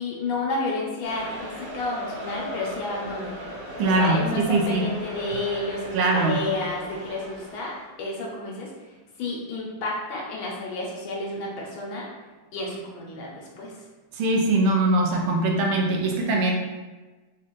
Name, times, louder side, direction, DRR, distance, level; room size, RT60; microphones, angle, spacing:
voice 1, 0.0-3.3 3.8-8.7 9.2-12.1 12.5-13.8, left 2 dB, 75° left, -2 dB, 1.6 m, -31 dB
sound 1, 1.0-7.8, equal, 50° right, 1.5 m, -37 dB
voice 2, 3.8-4.8 5.9-6.4 14.1-16.5, right 2 dB, 80° right, 1 dB, 1.4 m, -22 dB
4.2 x 2.5 x 3.0 m, 1.2 s
omnidirectional pair, 2.2 m